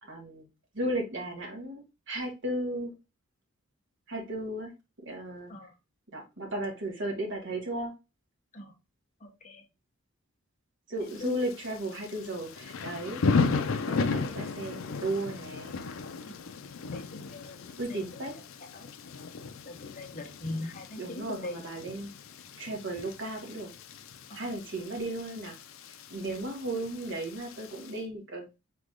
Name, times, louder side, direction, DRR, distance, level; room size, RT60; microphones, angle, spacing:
voice 1, 0.1-0.5 0.7-2.9 4.1-4.7 5.0-5.5 6.1-7.9 10.9-13.2 13.7-15.9 17.8-18.3 21.0-22.1 22.6-23.7 24.3-25.6 26.1-28.4, right 1 dB, 60° right, 1 dB, 1.6 m, -35 dB
voice 2, 9.2-9.6 11.2-11.4 16.2-16.4 16.9-17.6 17.9-18.0 18.7-18.9 19.6-21.6 24.3-24.4, left 2 dB, 35° left, 2 dB, 1.0 m, -41 dB
Thunder / Rain, 11.1-27.9, left 4 dB, 70° left, 0.5 m, -35 dB
3.7 x 3.4 x 3.6 m, 0.26 s
head